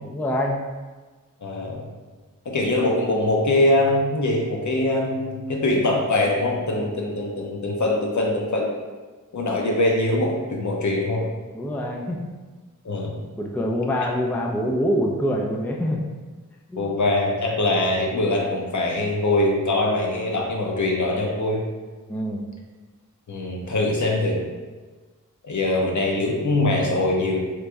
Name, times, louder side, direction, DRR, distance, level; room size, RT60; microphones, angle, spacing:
voice 1, 0.0-0.6 11.5-12.2 13.4-16.0 16.7-16.9 22.1-22.5, equal, 5° left, -1 dB, 0.3 m, -25 dB
voice 2, 1.4-1.9 2.5-8.7 9.3-11.3 12.8-13.2 16.8-21.6 23.3-24.4 25.4-27.4, left 2 dB, 60° left, -1 dB, 0.7 m, -23 dB
3.1 x 2.6 x 3.4 m, 1.3 s
wide cardioid pair, 80°, 32 cm